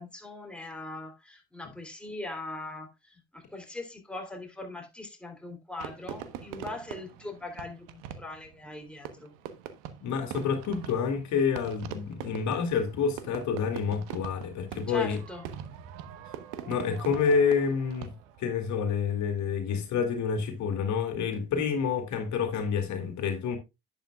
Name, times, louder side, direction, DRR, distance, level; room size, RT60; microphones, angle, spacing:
voice 1, 0.0-9.3 14.9-15.5, left 2 dB, 5° left, 3.2 m, -41 dB
Fireworks, 5.8-18.5, right 9 dB, 70° right, 1.2 m, -43 dB
voice 2, 10.0-15.2 16.7-23.6, left 6 dB, 60° left, 2.3 m, -28 dB
11.0 x 8.8 x 2.4 m
hypercardioid pair, 65°, 33 cm